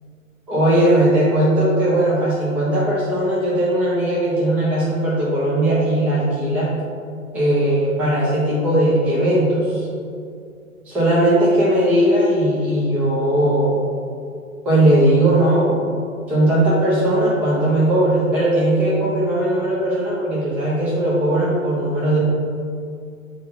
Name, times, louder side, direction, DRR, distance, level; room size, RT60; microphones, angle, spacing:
voice 1, 0.5-6.7 7.3-9.9 10.9-13.8 14.7-15.8 16.3-22.2, right 1 dB, 5° right, -7 dB, 0.4 m, -18 dB
7.8 x 3.1 x 6.1 m, 2.3 s
figure-of-eight pair, 115°, 43 cm